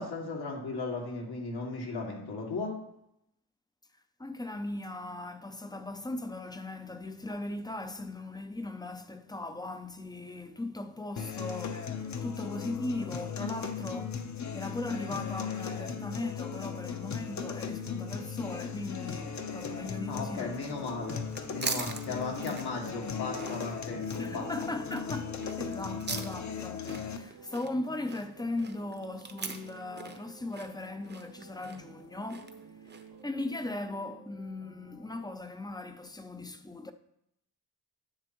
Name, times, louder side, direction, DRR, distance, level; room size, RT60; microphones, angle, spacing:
voice 1, 0.0-2.7 20.1-21.2 21.5-24.5, left 3 dB, 80° left, 2.3 m, -36 dB
voice 2, 4.2-20.9 22.5-22.6 24.2-36.9, left 2 dB, 10° left, 0.5 m, -38 dB
sound 1, 11.2-27.2, left 6 dB, 45° left, 0.8 m, -37 dB
sound 2, 16.5-35.3, right 5 dB, 85° right, 1.6 m, -53 dB
sound 3, 21.0-33.2, right 4 dB, 25° right, 0.7 m, -42 dB
10.5 x 7.7 x 3.0 m
wide cardioid pair, 135°, 39 cm